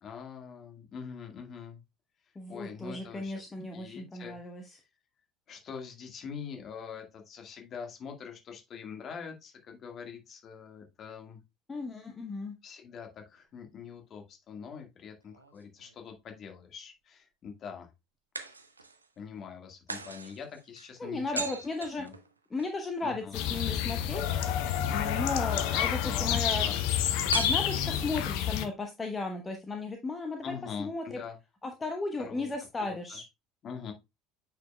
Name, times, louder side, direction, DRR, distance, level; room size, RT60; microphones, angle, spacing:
voice 1, 0.0-1.8 2.5-3.4 3.7-4.4 4.7-4.8 5.5-11.4 12.6-17.9 19.2-21.4 22.0-22.1 23.0-23.4 25.8-26.7 30.4-31.4 32.2-32.5 32.8-33.2 33.6-33.9, left 6 dB, 40° left, 4 dB, 1.8 m, -43 dB
voice 2, 2.4-4.6 11.7-12.6 21.0-22.0 22.5-24.2 24.9-26.6 27.3-30.5 30.8-31.2 31.6-33.2, left 3 dB, 20° left, 4 dB, 1.0 m, -35 dB
sound 1, 15.2-16.3 18.3-19.1 19.9-22.7 27.3-28.4, right 4 dB, 85° right, 0.6 m, -40 dB
sound 2, 23.3-28.6, left 10 dB, 60° left, 0.6 m, -29 dB
9.0 x 4.9 x 2.3 m, 0.23 s
figure-of-eight pair, 65°, 0 cm